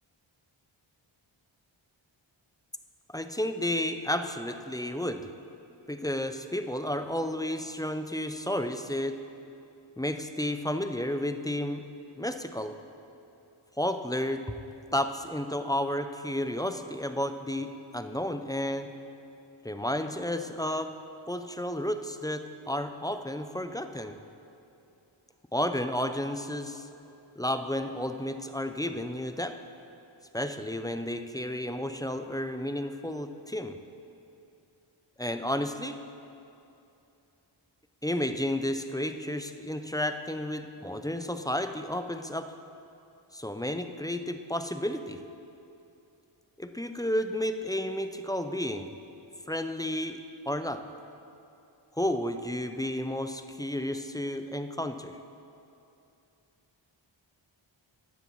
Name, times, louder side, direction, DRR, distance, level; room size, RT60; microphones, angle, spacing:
voice 1, 3.1-5.3 5.9-9.2 10.0-11.8 12.2-12.7 13.8-14.6 14.9-18.9 19.6-20.9 21.3-24.2 25.5-26.9 27.4-29.5 30.3-33.8 35.2-36.0 38.0-42.5 43.3-45.2 46.6-48.9 49.5-50.2 50.5-50.8 52.0-55.2, left 1 dB, 10° left, 8 dB, 0.4 m, -32 dB
14.0 x 9.6 x 3.1 m, 2.7 s
wide cardioid pair, 60°, 49 cm